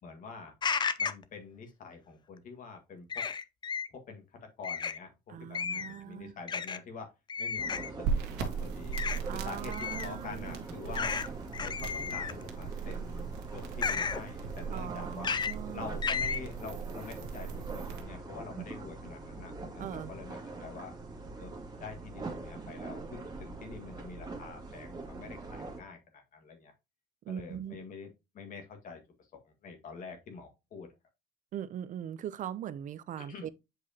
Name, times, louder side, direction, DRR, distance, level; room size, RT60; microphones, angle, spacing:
voice 1, 0.0-0.5 1.0-3.3 3.9-7.1 7.4-8.1 8.4-9.0 9.3-11.2 11.6-15.3 15.7-21.0 21.4-21.5 21.8-26.7 27.3-28.1 28.3-30.9 33.2-33.5, left 4 dB, 55° left, 1.8 m, -46 dB
sound 1, 0.6-1.2 3.1-3.9 4.6-5.0 5.5-6.0 6.5-6.8 7.3-7.9 8.9-9.2 9.7-10.1 10.9-11.3 11.5-12.4 13.8-14.2 15.2-15.5 16.0-16.4, left 6 dB, 25° left, 0.6 m, -32 dB
voice 2, 5.3-6.3 9.2-10.6 14.7-15.9 18.6-18.7 19.8-20.1 27.3-27.8 31.5-33.5, right 10 dB, 50° right, 0.6 m, -40 dB
sound 2, 7.6-25.8, right 3 dB, 25° right, 2.1 m, -44 dB
sound 3, 8.0-18.0, right 6 dB, 85° right, 1.5 m, -39 dB
7.8 x 4.8 x 2.8 m
cardioid pair, 120°, 17 cm